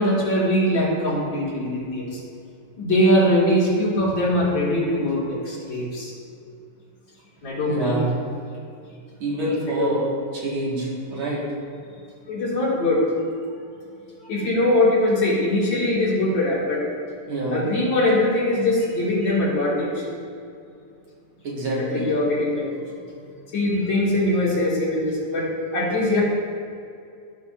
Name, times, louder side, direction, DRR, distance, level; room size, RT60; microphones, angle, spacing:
voice 1, 0.0-2.2 2.8-6.1 7.4-8.1 9.8-9.9 11.2-11.3 12.3-13.1 14.2-16.8 17.5-20.0 21.8-22.7 23.5-26.2, left 1 dB, 60° left, -7 dB, 2.9 m, -22 dB
voice 2, 7.7-8.1 9.2-10.1 10.3-11.4 17.3-17.6 21.4-22.0, right 1 dB, 70° right, -5 dB, 2.6 m, -26 dB
16.0 x 5.5 x 2.5 m, 2.5 s
omnidirectional pair, 2.4 m